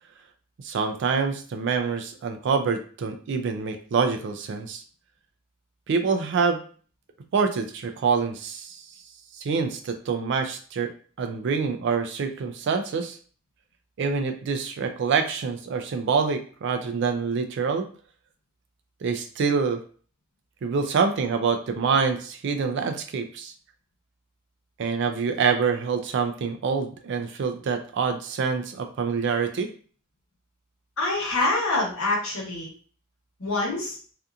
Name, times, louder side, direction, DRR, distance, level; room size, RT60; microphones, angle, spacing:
voice 1, 0.6-4.8 5.9-6.6 7.3-8.8 9.4-10.9 11.2-13.2 14.0-17.9 19.0-19.8 20.6-23.5 24.8-29.7, right 5 dB, 60° right, 7 dB, 0.3 m, -26 dB
voice 2, 31.0-32.7 33.4-34.0, left 2 dB, 75° left, -3 dB, 1.1 m, -25 dB
2.7 x 2.4 x 2.3 m, 0.42 s
head